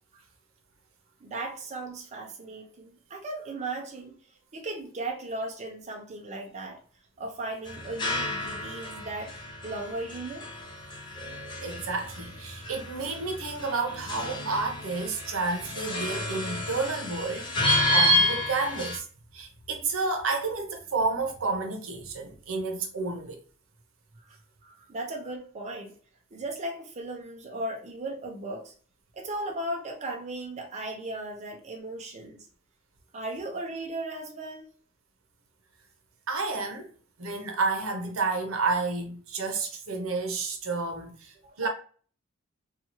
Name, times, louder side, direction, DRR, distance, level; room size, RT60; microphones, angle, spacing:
voice 1, 1.2-6.8 7.2-9.3 9.6-10.5 24.3-26.0 26.3-28.7 29.1-32.5 33.1-34.7 41.4-41.5, right 2 dB, 35° right, 0.5 m, -36 dB
sound 1, 7.7-19.0, left 1 dB, 20° left, 0.6 m, -30 dB
voice 2, 11.6-19.1 19.3-23.4 36.3-36.9 37.2-41.7, right 3 dB, 85° right, 0.7 m, -30 dB
2.7 x 2.3 x 2.8 m
head